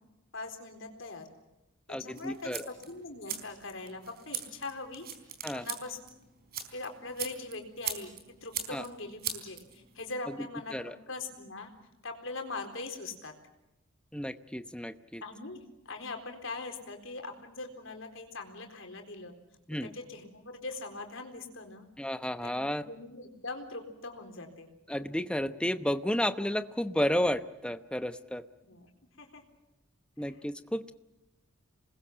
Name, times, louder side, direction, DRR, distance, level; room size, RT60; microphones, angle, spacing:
voice 1, 0.3-1.3 1.9-5.1 5.5-6.1 6.7-8.1 8.4-10.8 11.1-11.7 12.0-13.4 15.2-15.6 15.9-19.3 19.8-21.9 22.4-24.7 28.7-28.9 29.2-29.4 30.2-30.3, left 3 dB, 65° left, 5 dB, 4.1 m, -41 dB
voice 2, 1.9-2.7 5.4-5.7 8.7-8.8 10.3-10.4 10.7-11.0 14.1-15.2 19.7-19.9 22.0-22.8 24.9-28.5 30.2-30.9, left 1 dB, 5° left, 10 dB, 0.8 m, -32 dB
sound 1, 2.1-10.1, right 8 dB, 45° right, 4.0 m, -41 dB
28.0 x 21.0 x 7.6 m, 0.98 s
head